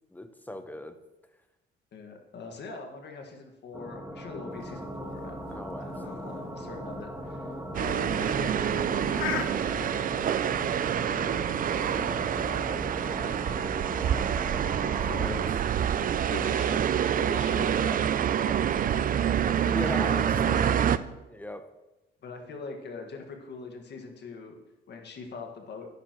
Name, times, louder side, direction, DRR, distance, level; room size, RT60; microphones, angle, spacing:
voice 1, 0.1-1.0 5.5-6.6 12.5-14.3 15.0-15.4 16.3-16.9 19.6-20.4 21.3-21.6, left 1 dB, 10° left, 8 dB, 0.9 m, -41 dB
voice 2, 1.9-5.4 5.8-9.3 11.6-12.2 15.1-15.4 16.0-19.5 19.9-21.0 22.2-24.6 24.9-25.9, left 4 dB, 60° left, 3 dB, 1.8 m, -42 dB
sound 1, 3.7-15.5, equal, 10° right, 1.6 m, -38 dB
sound 2, 4.6-9.9, left 9 dB, 90° left, 0.7 m, -40 dB
sound 3, 7.7-21.0, right 9 dB, 45° right, 0.4 m, -27 dB
12.5 x 10.0 x 3.1 m, 1.0 s
cardioid pair, 90°, 20 cm